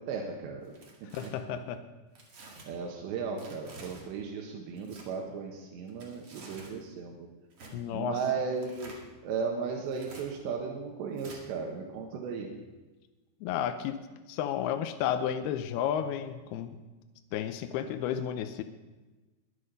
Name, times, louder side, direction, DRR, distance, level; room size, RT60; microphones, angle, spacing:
voice 1, 0.1-0.7 2.7-7.3 7.9-9.0 9.2-12.5, right 5 dB, 85° right, 1 dB, 3.6 m, -35 dB
Tearing, 0.6-1.3 2.1-2.7 3.4-4.0 4.7-5.0 5.9-6.8 7.5-7.7 8.5-9.0 9.8-10.2 11.2-11.4, right 2 dB, 40° right, 2.5 m, -49 dB
voice 2, 1.1-1.8 7.7-8.2 13.4-16.8 17.3-18.6, left 9 dB, 80° left, 8 dB, 2.5 m, -32 dB
21.5 x 8.6 x 5.3 m, 1.2 s
omnidirectional pair, 4.9 m